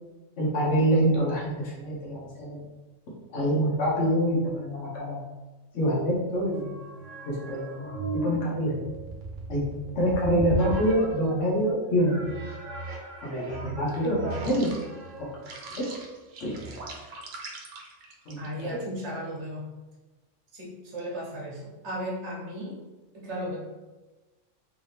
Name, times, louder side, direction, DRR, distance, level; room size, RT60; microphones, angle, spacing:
voice 1, 0.4-2.6 3.3-5.2 5.7-6.8 7.3-8.8 9.5-9.6 9.9-12.3 13.2-14.2 14.4-14.7 15.2-15.3 15.8-15.9 16.4-16.5 18.3-18.8, equal, 75° left, -5 dB, 1.2 m, -26 dB
sound 1, 6.5-11.5 12.0-18.7, right 2 dB, 85° right, 1.0 m, -37 dB
voice 2, 18.4-19.6 20.5-22.8 23.1-23.6, equal, 65° right, -4 dB, 1.2 m, -35 dB
3.3 x 2.7 x 3.2 m, 1.2 s
omnidirectional pair, 1.3 m